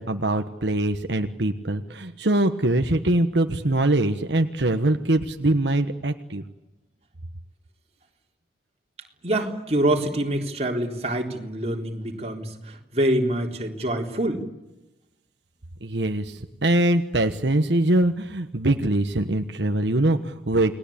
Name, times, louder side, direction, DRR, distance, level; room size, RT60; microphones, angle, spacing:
voice 1, 0.0-6.4 15.8-20.8, right 1 dB, 75° right, 6 dB, 1.4 m, -23 dB
voice 2, 9.2-14.5, right 1 dB, 35° right, 1 dB, 3.8 m, -25 dB
29.5 x 20.5 x 8.7 m, 1.0 s
head